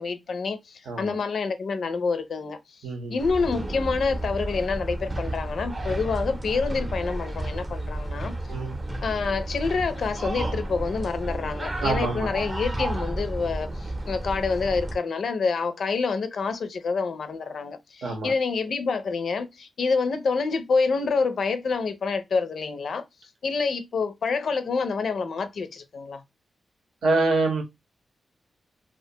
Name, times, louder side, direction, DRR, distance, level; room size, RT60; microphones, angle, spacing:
voice 1, 0.0-8.4 9.0-26.2, left 4 dB, 70° left, 0.4 m, -27 dB
voice 2, 0.9-1.2 2.8-3.1 8.5-8.7 11.8-12.3 18.0-18.3 27.0-27.6, right 3 dB, 85° right, 0.8 m, -25 dB
sound 1, 3.2-15.0, right 1 dB, 25° right, 0.6 m, -32 dB
2.4 x 2.2 x 2.7 m
wide cardioid pair, 100°, 0 cm